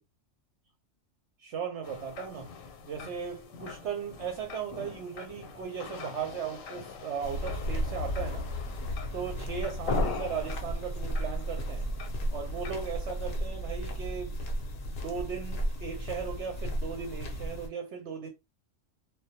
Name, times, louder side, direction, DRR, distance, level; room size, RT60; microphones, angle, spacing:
voice 1, 1.4-2.5 2.8-8.5 9.1-11.9 12.3-14.4 14.8-18.3, right 7 dB, 70° right, 0.8 m, -37 dB
sound 1, 1.8-13.4, left 5 dB, 85° left, 1.0 m, -42 dB
sound 2, 7.2-17.7, equal, 60° left, 0.6 m, -34 dB
2.2 x 2.1 x 2.7 m
omnidirectional pair, 1.3 m